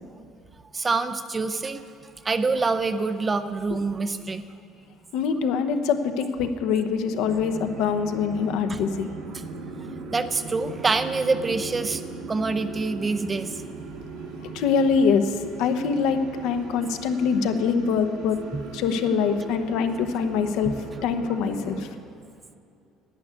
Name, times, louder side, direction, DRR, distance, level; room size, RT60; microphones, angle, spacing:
voice 1, 0.7-1.8 2.2-4.4 8.7-8.8 10.1-12.0 12.3-13.5 18.5-18.6 20.7-20.8, right 3 dB, 15° right, 11 dB, 0.5 m, -26 dB
voice 2, 5.1-9.1 14.5-18.4 18.7-20.7 21.0-21.9, left 6 dB, 70° left, 8 dB, 0.9 m, -24 dB
sound 1, 7.2-21.8, right 4 dB, 85° right, 2.3 m, -39 dB
11.0 x 9.3 x 8.2 m, 2.5 s
cardioid pair, 165°, 0 cm